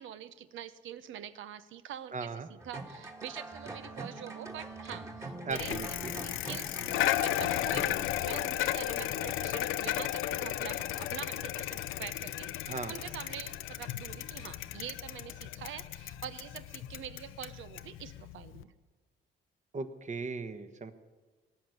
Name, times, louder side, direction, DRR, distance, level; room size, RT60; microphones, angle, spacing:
voice 1, 0.0-18.7, right 10 dB, 80° right, 13 dB, 0.8 m, -45 dB
voice 2, 2.1-2.5 5.4-6.1 12.7-12.9 19.7-20.9, right 4 dB, 40° right, 9 dB, 1.3 m, -37 dB
sound 1, 2.6-8.0, right 2 dB, 15° right, 1.7 m, -43 dB
Bicycle, 5.5-18.6, left 13 dB, 90° left, 0.6 m, -34 dB
18.0 x 6.5 x 9.7 m, 1.3 s
cardioid pair, 90°, 20 cm